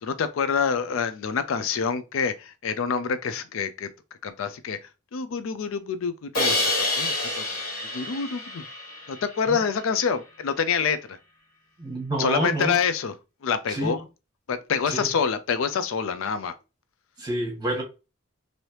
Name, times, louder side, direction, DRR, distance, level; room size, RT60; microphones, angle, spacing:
voice 1, 0.0-3.9 4.2-4.8 5.1-7.4 7.9-8.6 9.1-11.0 12.2-13.1 13.4-14.0 14.5-16.5, left 6 dB, 65° left, 0.4 m, -26 dB
Crash cymbal, 6.3-9.4, left 2 dB, 45° left, 1.2 m, -27 dB
voice 2, 11.8-12.8 13.7-14.0 14.9-15.1 17.2-17.8, right 1 dB, 20° right, 1.1 m, -28 dB
3.2 x 2.7 x 2.8 m
head